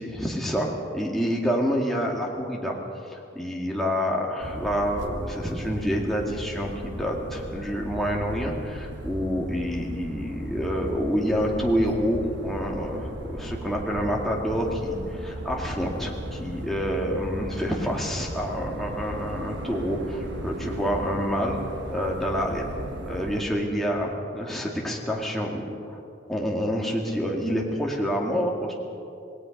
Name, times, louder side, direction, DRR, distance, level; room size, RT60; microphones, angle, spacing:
voice 1, 0.0-2.8 3.1-21.6 21.9-22.7 23.1-25.8 26.3-28.7, equal, ahead, -2 dB, 2.2 m, -27 dB
sound 1, 4.4-23.4, right 1 dB, 55° right, 1.5 m, -36 dB
27.0 x 19.5 x 5.3 m, 2.6 s
head